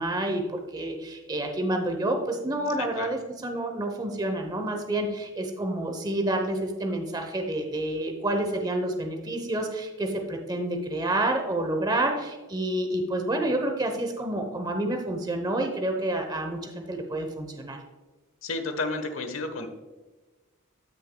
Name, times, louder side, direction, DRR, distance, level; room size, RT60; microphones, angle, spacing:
voice 1, 0.0-17.8, right 1 dB, 20° right, 4 dB, 0.8 m, -29 dB
voice 2, 2.8-3.1 18.4-19.7, left 3 dB, 70° left, 7 dB, 1.1 m, -31 dB
13.0 x 6.3 x 2.2 m, 1.2 s
head